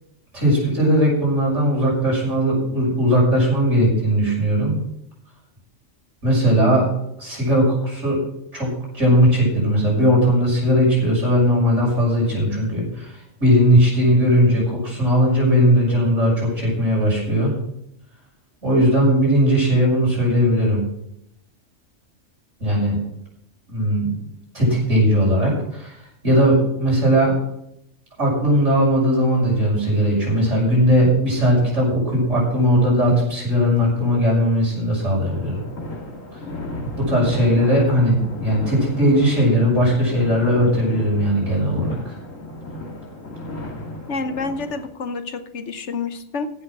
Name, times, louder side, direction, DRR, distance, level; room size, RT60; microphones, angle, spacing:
voice 1, 0.3-4.8 6.2-6.9 7.2-8.2 8.5-8.7 8.9-17.5 18.6-20.8 22.6-23.0 23.7-24.1 24.5-26.0 26.2-27.3 28.2-35.6 36.3-36.4 37.0-42.1, equal, 65° right, -4 dB, 6.6 m, -18 dB
sound 1, 35.2-44.9, left 1 dB, 85° left, 2.6 m, -34 dB
voice 2, 44.1-46.5, left 4 dB, 65° left, 9 dB, 1.2 m, -28 dB
15.5 x 6.5 x 6.0 m, 0.77 s
omnidirectional pair, 1.3 m